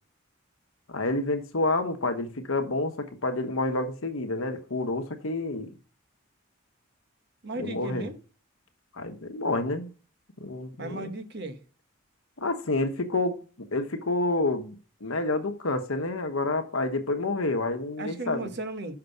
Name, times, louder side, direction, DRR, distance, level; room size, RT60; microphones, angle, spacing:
voice 1, 0.9-5.7 7.6-8.1 8.9-9.9 10.4-11.1 12.4-14.7 15.0-18.5, left 2 dB, 85° left, 1.2 m, -29 dB
voice 2, 7.4-8.2 10.8-11.6 18.0-19.0, right 2 dB, 55° right, 1.1 m, -36 dB
6.0 x 5.8 x 6.7 m
head